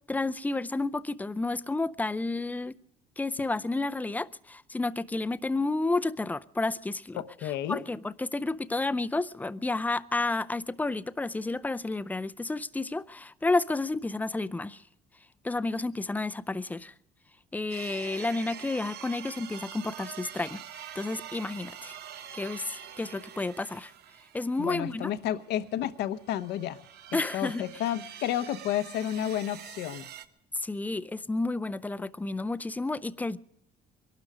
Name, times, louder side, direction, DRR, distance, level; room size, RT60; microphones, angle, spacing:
voice 1, 0.1-2.8 3.2-7.2 7.7-14.8 15.4-16.9 17.5-20.6 21.0-22.0 22.3-23.9 24.3-25.1 27.1-27.7 30.6-33.4, left 2 dB, 10° left, 0.5 m, -31 dB
voice 2, 7.1-7.8 24.6-26.8 27.1-30.1, left 11 dB, 80° left, 0.9 m, -31 dB
sound 1, 17.7-25.6 26.1-30.2, right 9 dB, 70° right, 1.0 m, -45 dB
22.5 x 12.0 x 4.9 m
cardioid pair, 110°, 17 cm